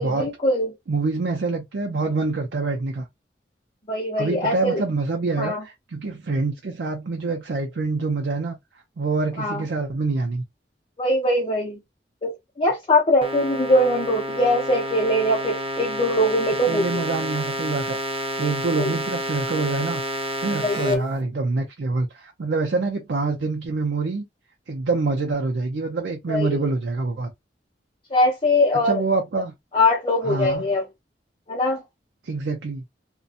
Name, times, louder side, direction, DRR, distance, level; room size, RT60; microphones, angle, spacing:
voice 1, 0.0-0.7 3.9-4.8 5.4-5.6 9.4-9.6 11.0-11.8 12.2-17.0 18.8-18.9 20.6-21.0 26.3-26.6 28.1-29.0 29.7-30.8 31.5-31.8, left 1 dB, 30° left, 0.6 m, -22 dB
voice 2, 0.9-3.1 4.2-8.6 9.0-10.4 16.7-20.0 20.4-24.3 24.7-27.3 28.7-29.5 30.2-30.6 32.2-32.8, right 3 dB, 75° right, 0.5 m, -26 dB
sound 1, 13.2-20.9, equal, 30° right, 0.6 m, -29 dB
2.7 x 2.2 x 2.4 m
head